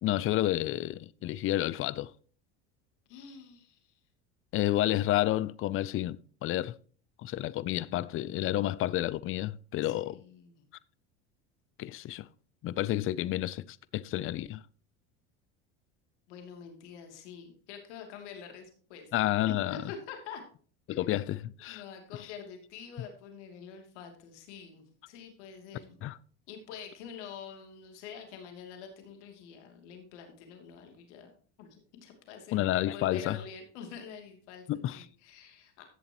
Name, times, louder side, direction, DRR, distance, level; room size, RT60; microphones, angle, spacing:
voice 1, 0.0-2.1 4.5-6.7 7.2-10.2 11.8-12.3 12.6-14.6 19.1-19.8 20.9-21.8 22.2-22.3 26.0-26.2 32.5-33.4 34.7-35.0, left 14 dB, 40° left, 0.5 m, -30 dB
voice 2, 3.1-3.9 9.8-10.6 16.3-19.1 19.4-20.4 20.9-21.0 21.7-26.0 26.5-31.3 31.6-35.8, left 6 dB, 80° left, 2.9 m, -46 dB
15.5 x 7.1 x 3.0 m
supercardioid pair, 105°, 34 cm